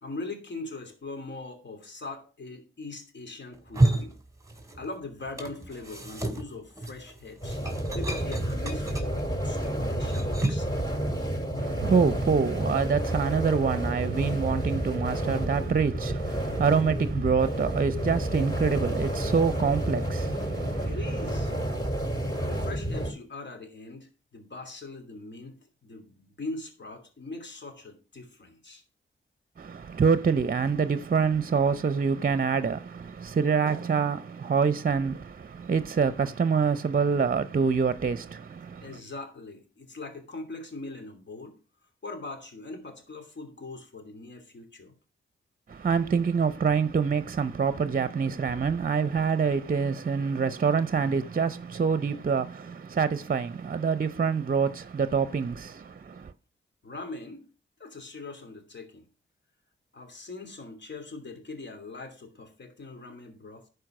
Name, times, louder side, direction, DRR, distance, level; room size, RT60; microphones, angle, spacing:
voice 1, 0.0-4.2 4.8-7.6 7.9-10.8 20.8-21.5 22.4-28.8 38.8-41.6 41.8-44.9 56.8-57.5 57.8-59.1 59.9-63.7, left 3 dB, 60° left, 2.9 m, -41 dB
sound 1, 3.5-5.0 5.2-10.8, right 2 dB, 15° right, 2.6 m, -31 dB
sound 2, 7.4-23.1, right 1 dB, 20° left, 6.0 m, -30 dB
voice 2, 11.6-20.9 29.6-38.9 45.7-56.3, right 5 dB, 45° right, 0.7 m, -26 dB
11.0 x 4.8 x 6.1 m
cardioid pair, 50°, 21 cm